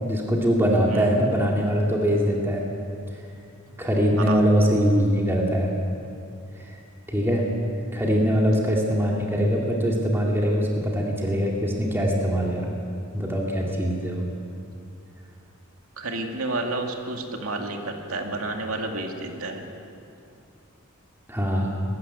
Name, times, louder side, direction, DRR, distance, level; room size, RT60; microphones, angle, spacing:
voice 1, 0.0-2.7 3.8-5.7 6.6-6.8 7.1-7.4 7.9-12.7 13.1-14.2 21.3-21.7, equal, 10° right, -2 dB, 2.2 m, -22 dB
voice 2, 16.0-19.6, right 2 dB, 80° right, 3 dB, 2.3 m, -30 dB
20.5 x 15.0 x 9.4 m, 2.6 s
head